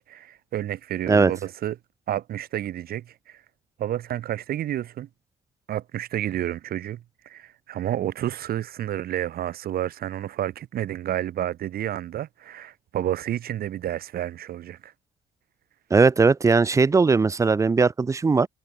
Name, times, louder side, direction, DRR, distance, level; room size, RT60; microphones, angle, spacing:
voice 1, 0.0-1.8 2.1-3.4 3.8-5.1 5.7-14.9, right 12 dB, 65° right, 4.7 m, -30 dB
voice 2, 15.9-18.5, right 4 dB, 20° right, 0.5 m, -19 dB
cardioid pair, 120°, 16 cm